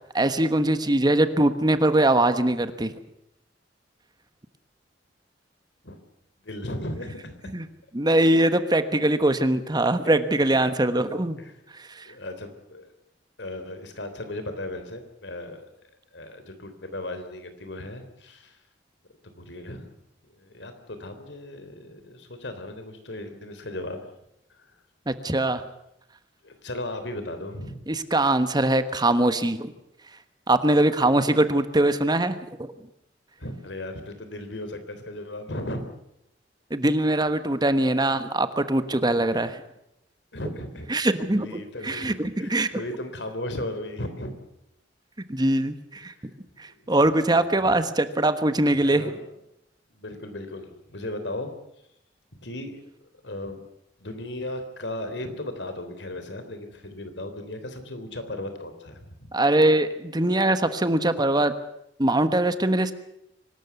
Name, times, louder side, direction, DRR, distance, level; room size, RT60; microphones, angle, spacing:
voice 1, 0.1-2.9 7.5-7.7 7.9-11.4 11.8-12.1 25.1-25.6 27.9-29.7 30.5-32.7 36.7-39.6 40.9-42.7 45.3-46.1 46.6-49.1 59.3-61.5 62.0-62.9, right 1 dB, 25° right, 11 dB, 1.2 m, -22 dB
voice 2, 6.4-7.5 10.0-10.7 11.4-11.6 12.1-12.9 13.4-15.7 16.1-18.6 19.2-19.9 20.3-24.1 24.5-24.7 26.4-27.8 33.4-35.8 39.3-39.5 40.3-41.1 41.3-44.3 46.0-46.3 47.4-47.8 48.8-49.2 49.9-51.5 52.4-52.9 53.2-53.6 54.0-59.3, left 1 dB, 75° left, 8 dB, 3.5 m, -36 dB
24.5 x 13.0 x 9.4 m, 0.80 s
head